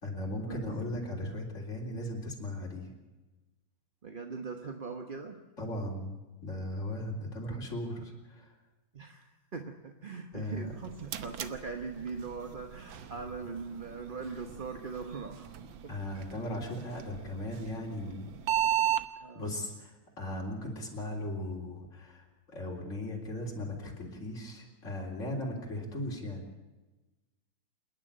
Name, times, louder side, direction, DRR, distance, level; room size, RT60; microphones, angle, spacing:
voice 1, 0.0-2.9 5.6-8.5 10.3-10.7 15.9-18.4 19.3-26.4, left 1 dB, 35° left, -2 dB, 4.1 m, -37 dB
voice 2, 4.0-5.4 8.9-15.5 15.8-15.9 19.2-19.5, right 4 dB, 35° right, 5 dB, 1.0 m, -41 dB
sound 1, 10.6-19.1, right 11 dB, 70° right, 1.7 m, -36 dB
28.0 x 10.5 x 8.9 m, 1.2 s
omnidirectional pair, 2.2 m